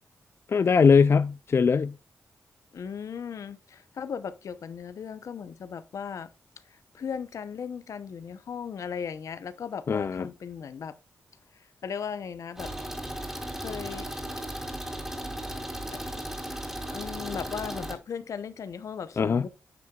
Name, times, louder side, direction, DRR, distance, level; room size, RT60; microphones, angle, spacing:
voice 1, 0.5-1.9 9.9-10.3 19.2-19.4, left 5 dB, 50° left, 0.4 m, -21 dB
voice 2, 2.7-6.3 6.7-10.9 11.5-12.7 13.6-14.4 15.9-16.2 16.9-19.5, left 7 dB, 75° left, 0.8 m, -37 dB
sound 1, 12.6-17.9, right 1 dB, 10° right, 2.9 m, -36 dB
11.5 x 7.6 x 2.4 m
cardioid pair, 70°, 5 cm